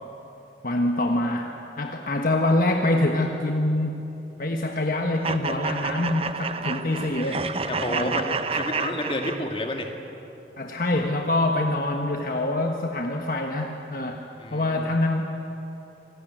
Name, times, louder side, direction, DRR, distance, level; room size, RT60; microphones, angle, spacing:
voice 1, 0.6-4.1 4.4-7.5 7.9-8.1 10.6-14.2 14.5-15.2, left 1 dB, 50° left, 2 dB, 1.4 m, -25 dB
sound 1, 5.2-9.8, right 4 dB, 35° right, 0.8 m, -30 dB
voice 2, 7.7-9.9 14.4-14.9, left 1 dB, 30° left, 3 dB, 2.4 m, -30 dB
27.5 x 19.5 x 9.2 m, 3.0 s
head